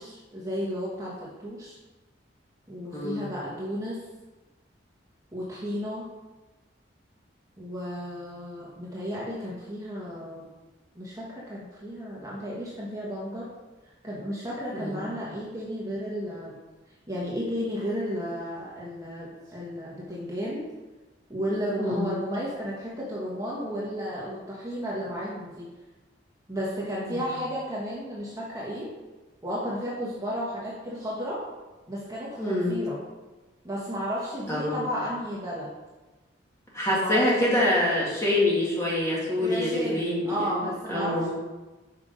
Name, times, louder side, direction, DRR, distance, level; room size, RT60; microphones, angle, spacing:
voice 1, 0.0-1.8 2.7-4.1 5.3-6.1 7.6-10.5 10.9-13.5 14.0-16.6 17.1-20.6 21.3-25.7 26.5-28.9 29.4-31.5 31.9-33.0 33.6-35.7 36.9-37.7 39.4-41.3, equal, 20° right, -6 dB, 1.2 m, -33 dB
voice 2, 2.9-3.3 14.8-15.1 21.8-22.2 27.0-27.2 32.4-32.8 34.5-34.9 36.7-41.3, left 1 dB, 15° left, -6 dB, 2.0 m, -26 dB
5.9 x 5.3 x 5.1 m, 1.2 s
head